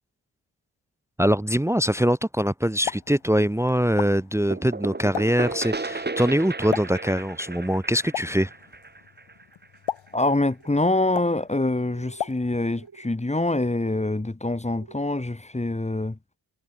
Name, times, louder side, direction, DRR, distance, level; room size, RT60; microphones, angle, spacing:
voice 1, 1.2-8.5, equal, 5° right, 0.7 m, -23 dB
Explosion, 2.6-12.9, left 9 dB, 90° left, 3.5 m, -38 dB
sound 1, 4.5-10.1, right 3 dB, 20° right, 2.4 m, -34 dB
voice 2, 10.1-16.2, left 2 dB, 15° left, 2.9 m, -25 dB
sound 2, 10.6-11.1 11.8-12.3 12.6-13.1 13.8-14.2 14.7-15.3, right 6 dB, 55° right, 6.4 m, -50 dB
cardioid pair, 95°, 45 cm